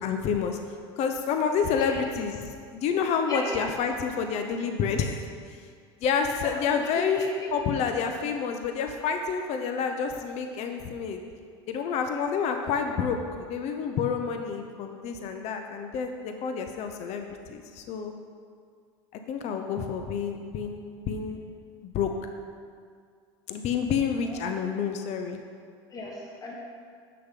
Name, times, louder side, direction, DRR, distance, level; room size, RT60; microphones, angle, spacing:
voice 1, 0.0-0.6 1.0-5.6 6.0-7.2 7.5-11.2 11.7-18.1 19.3-21.4 21.8-22.1 23.5-25.4, left 6 dB, 50° left, 5 dB, 0.7 m, -29 dB
voice 2, 6.4-7.3 12.6-12.8 19.5-19.9 24.2-24.4 25.9-26.5, left 2 dB, 25° left, -2 dB, 1.3 m, -37 dB
7.8 x 6.4 x 3.7 m, 2.1 s
hypercardioid pair, 90°, 14 cm